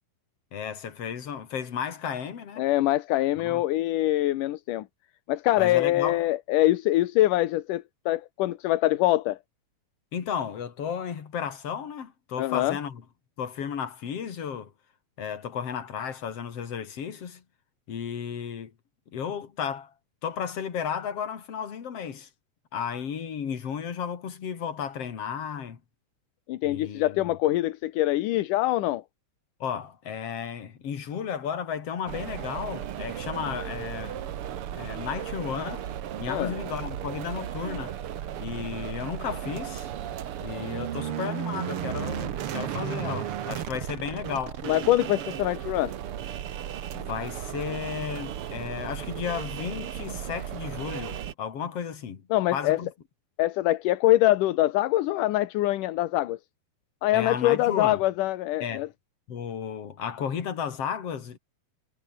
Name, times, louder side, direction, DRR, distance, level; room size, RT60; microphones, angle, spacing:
voice 1, 0.5-2.6 3.4-3.6 5.6-6.2 10.1-13.0 13.4-14.7 15.2-17.4 17.9-18.7 19.1-19.9 20.2-22.3 22.7-25.8 26.6-27.2 29.6-34.3 34.7-35.8 36.2-37.9 38.4-39.9 40.4-44.6 46.9-52.9 57.1-58.0 58.6-58.8 59.3-61.4, left 7 dB, 50° left, 3.3 m, -33 dB
voice 2, 2.6-4.9 5.3-9.4 12.4-12.8 26.5-29.0 36.3-36.5 44.6-45.9 52.3-52.8 53.4-56.4 57.0-58.9, left 15 dB, 85° left, 2.6 m, -24 dB
sound 1, 32.1-51.3, right 10 dB, 55° right, 1.8 m, -35 dB
omnidirectional pair, 3.6 m